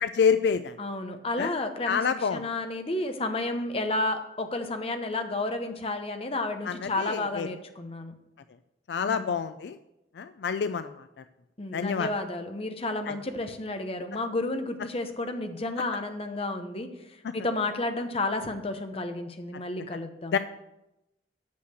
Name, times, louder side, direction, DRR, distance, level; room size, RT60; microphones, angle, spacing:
voice 1, 0.0-0.8 1.4-1.5 1.9-2.4 6.7-7.5 8.9-9.8 10.1-11.2 11.7-12.1 13.1-13.2 17.2-17.3 20.3-20.4, left 6 dB, 70° left, 12 dB, 0.4 m, -27 dB
voice 2, 0.8-2.0 2.3-8.2 9.0-9.3 11.6-20.4, left 2 dB, 35° left, 7 dB, 0.9 m, -31 dB
8.4 x 6.5 x 6.3 m, 0.90 s
head